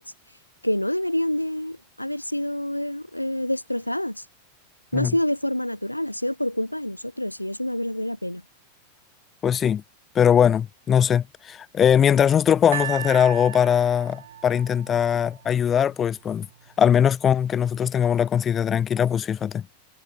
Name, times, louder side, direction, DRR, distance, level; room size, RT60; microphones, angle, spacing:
voice 1, 0.0-4.3 4.9-8.4, left 1 dB, 90° left, 1.4 m, -27 dB
voice 2, 9.4-9.8 10.1-16.5 16.8-19.6, left 8 dB, 25° left, 4.3 m, -21 dB
sound 1, 12.7-15.9 16.7-16.8, right 10 dB, 60° right, 5.0 m, -36 dB
figure-of-eight pair, 90°, 0 cm